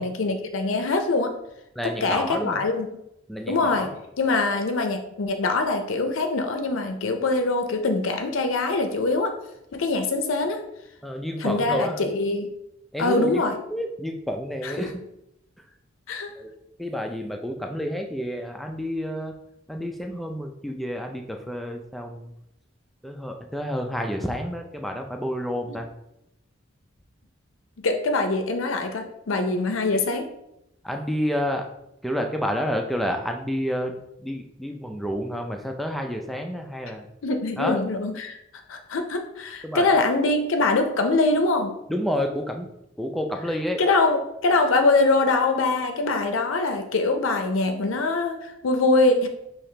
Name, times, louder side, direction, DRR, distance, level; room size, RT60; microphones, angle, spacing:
voice 1, 0.0-1.3 1.8-3.0 3.5-3.9 4.2-9.4 9.7-10.6 11.4-12.5 13.0-13.5 14.6-14.9 16.1-16.3 25.7-25.8 27.8-30.3 37.2-38.4 38.7-41.7 43.8-49.3, left 3 dB, 85° left, 6 dB, 0.5 m, -23 dB
voice 2, 1.8-2.6 3.3-3.9 11.0-12.0 12.9-13.4 13.7-14.9 16.4-16.5 16.8-19.3 19.7-22.3 23.0-25.9 30.8-31.6 32.0-37.1 37.6-37.8 39.6-39.9 41.9-42.7 43.0-43.8, equal, ahead, 3 dB, 0.3 m, -29 dB
5.6 x 2.9 x 3.2 m, 0.83 s
head